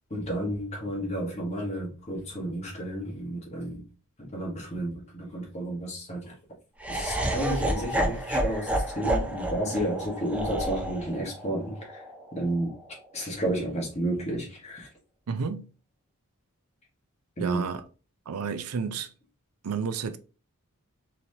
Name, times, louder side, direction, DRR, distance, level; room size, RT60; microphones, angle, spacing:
voice 1, 0.1-3.9 4.3-6.3 6.9-12.0 12.3-12.7 13.1-14.9 17.4-17.7, right 1 dB, 30° left, 1.4 m, -31 dB
Laughter, 6.8-12.9, right 1 dB, 5° right, 0.5 m, -30 dB
voice 2, 15.3-15.7 17.4-17.8 18.3-19.1 19.6-20.2, right 5 dB, 80° right, 0.5 m, -31 dB
4.2 x 3.2 x 2.8 m
head